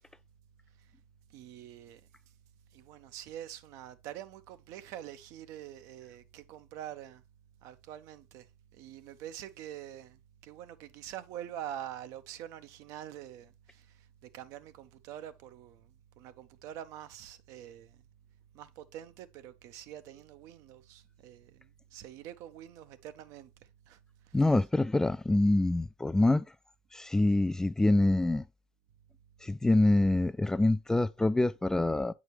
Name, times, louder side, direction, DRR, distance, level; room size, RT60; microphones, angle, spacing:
voice 1, 1.3-2.0 2.7-7.2 7.6-8.5 8.7-14.1 14.3-18.0 18.5-23.5 23.9-24.0 24.3-24.4, right 11 dB, 65° right, 0.7 m, -45 dB
voice 2, 24.3-26.5 26.9-28.4 29.4-32.1, left 2 dB, 10° left, 0.3 m, -25 dB
8.2 x 4.9 x 3.1 m
supercardioid pair, 90°, 6 cm